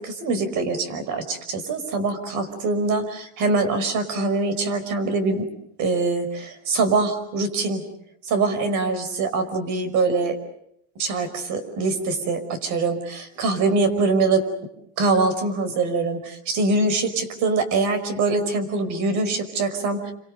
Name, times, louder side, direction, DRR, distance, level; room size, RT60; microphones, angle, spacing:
voice 1, 0.0-5.5 5.8-7.8 8.2-10.4 11.0-14.4 15.0-20.1, right 3 dB, 55° right, 10 dB, 5.3 m, -23 dB
29.0 x 26.0 x 6.7 m, 0.73 s
cardioid pair, 145°, 36 cm